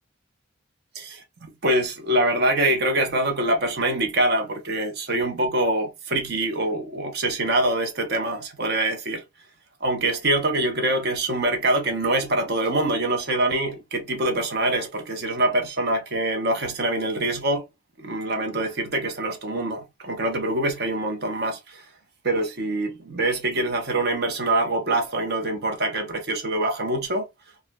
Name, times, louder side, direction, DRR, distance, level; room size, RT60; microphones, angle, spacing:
voice 1, 1.6-9.2 9.8-17.6 18.0-21.8 22.2-27.2, right 1 dB, 55° right, 0.8 m, -24 dB
4.7 x 2.1 x 2.2 m
head